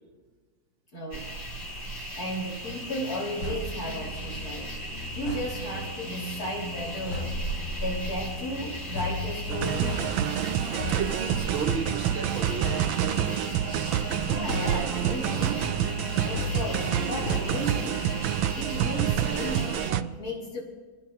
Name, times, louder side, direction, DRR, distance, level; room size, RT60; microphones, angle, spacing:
voice 1, 0.9-1.4 2.1-4.8 5.1-7.4 7.8-10.1 14.2-15.8 16.2-18.2 18.6-20.6, equal, 50° left, -3 dB, 3.9 m, -35 dB
sound 1, 1.1-19.9, right 1 dB, 35° left, 2.8 m, -37 dB
sound 2, 3.4-18.2, left 2 dB, 80° left, 2.6 m, -37 dB
sound 3, 9.5-20.0, right 11 dB, 85° right, 1.3 m, -28 dB
voice 2, 10.8-14.0, right 5 dB, 45° right, 5 dB, 0.8 m, -35 dB
29.0 x 10.5 x 2.9 m, 1.4 s
omnidirectional pair, 2.1 m